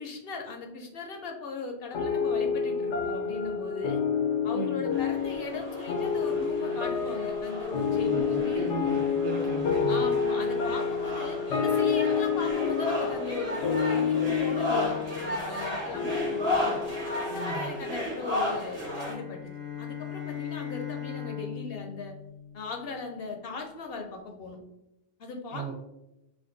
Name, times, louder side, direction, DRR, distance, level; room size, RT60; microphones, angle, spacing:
voice 1, 0.0-4.0 4.4-8.8 9.9-16.8 17.2-19.5 19.8-22.1 22.5-24.6 25.2-25.7, left 3 dB, 65° left, 4 dB, 0.7 m, -38 dB
sound 1, 1.9-18.7, left 6 dB, 90° left, 1.0 m, -29 dB
voice 2, 4.5-4.8 8.0-10.0 17.3-17.8 25.5-25.7, right 4 dB, 80° right, 0 dB, 1.2 m, -36 dB
sound 2, 4.9-19.1, left 1 dB, 60° right, 1.4 m, -35 dB
sound 3, 18.7-23.2, left 9 dB, 20° left, 0.5 m, -39 dB
5.8 x 2.5 x 2.5 m, 0.89 s
omnidirectional pair, 1.2 m